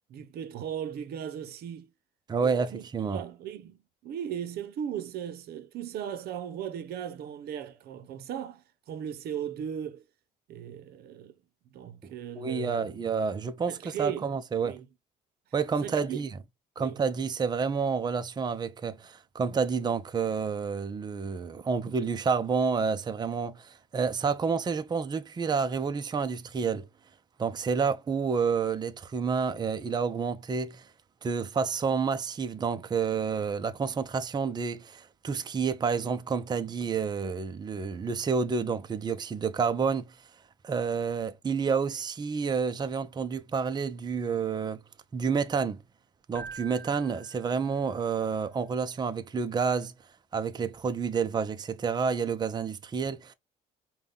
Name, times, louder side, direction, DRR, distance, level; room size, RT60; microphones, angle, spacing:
voice 1, 0.0-1.9 2.4-2.8 3.1-10.0 10.5-11.3 11.7-12.8 13.7-14.3 14.6-14.9 15.8-16.2 16.8-17.0, right 9 dB, 70° right, 0.8 m, -37 dB
voice 2, 2.3-3.2 12.0-14.8 15.5-16.3 16.8-26.9 27.4-30.9 31.2-40.3 40.6-44.8 45.1-45.8 46.3-49.9 50.3-53.3, right 5 dB, 25° right, 0.6 m, -29 dB
Keyboard (musical), 46.3-48.2, right 4 dB, 15° left, 1.7 m, -46 dB
5.2 x 2.3 x 3.8 m
cardioid pair, 110°, 17 cm